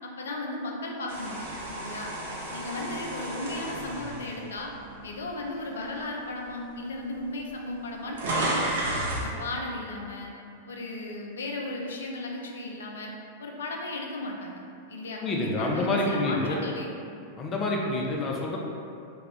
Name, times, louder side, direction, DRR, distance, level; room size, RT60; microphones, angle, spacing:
voice 1, 0.0-2.1 2.5-4.7 5.0-8.8 9.2-10.3 10.7-13.1 13.4-14.6 14.9-17.0, left 2 dB, 75° left, 0 dB, 0.4 m, -35 dB
sound 1, 1.1-5.3 5.8-6.0 6.9-7.0 7.2-9.3, right 1 dB, 70° right, 0.8 m, -32 dB
voice 2, 15.2-16.6 17.4-18.6, left 2 dB, 30° left, -1 dB, 0.6 m, -27 dB
3.4 x 2.4 x 3.3 m, 2.5 s
hypercardioid pair, 95°, 0 cm